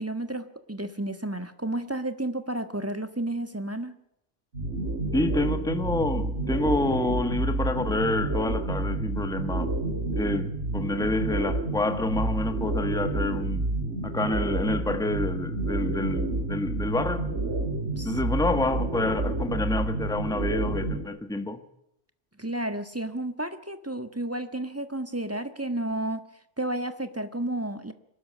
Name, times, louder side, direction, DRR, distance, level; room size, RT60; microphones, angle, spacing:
voice 1, 0.0-3.9 18.0-18.2 22.4-26.2 26.6-27.9, right 1 dB, 10° right, 1.5 m, -32 dB
sound 1, 4.5-21.0, right 2 dB, 70° right, 3.8 m, -29 dB
voice 2, 5.1-9.7 10.1-13.7 14.0-17.3 18.0-21.6, left 2 dB, 5° left, 1.4 m, -28 dB
24.0 x 13.0 x 9.5 m
omnidirectional pair, 1.2 m